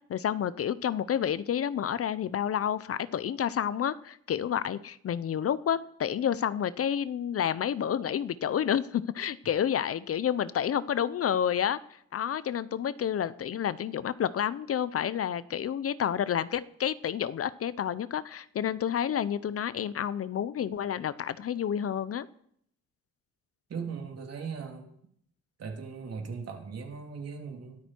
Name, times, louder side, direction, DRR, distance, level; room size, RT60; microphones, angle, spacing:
voice 1, 0.1-22.3, left 9 dB, 50° left, 16 dB, 0.7 m, -30 dB
voice 2, 23.7-24.9 25.6-27.9, right 5 dB, 55° right, 2 dB, 3.4 m, -38 dB
22.0 x 13.0 x 4.6 m, 0.69 s
cardioid pair, 90°, 30 cm